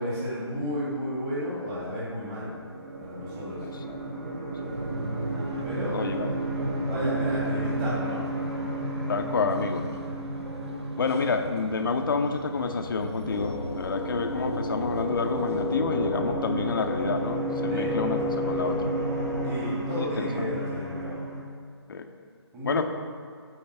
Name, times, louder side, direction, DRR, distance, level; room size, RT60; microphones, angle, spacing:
voice 1, 0.0-2.5 3.0-3.6 5.6-6.0 6.9-8.2 17.7-17.9 19.4-21.2 22.5-22.8, equal, 15° right, -8 dB, 2.0 m, -32 dB
sound 1, 2.0-21.4, right 1 dB, 35° right, 1.5 m, -34 dB
voice 2, 3.6-4.0 4.7-4.8 5.9-6.4 9.1-9.9 11.0-18.8 19.9-20.5 21.9-22.1 22.6-22.8, left 4 dB, 50° left, 6 dB, 0.6 m, -29 dB
sound 2, 4.6-15.8, right 2 dB, 70° right, 0.8 m, -40 dB
sound 3, 13.3-19.5, left 1 dB, 5° left, 0.4 m, -32 dB
8.9 x 4.5 x 4.6 m, 2.2 s
figure-of-eight pair, 155°, 14 cm